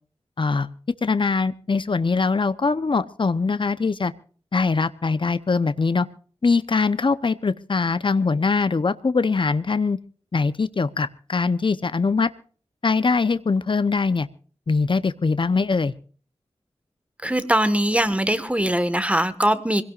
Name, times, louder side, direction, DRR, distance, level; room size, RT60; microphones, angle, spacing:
voice 1, 0.4-0.7 1.0-4.1 4.5-6.1 6.4-10.0 10.3-12.3 12.8-14.3 14.7-15.9, left 4 dB, 50° left, 0.9 m, -22 dB
voice 2, 17.2-19.8, right 1 dB, 10° right, 1.6 m, -21 dB
25.5 x 17.0 x 2.5 m
wide cardioid pair, 80°, 11 cm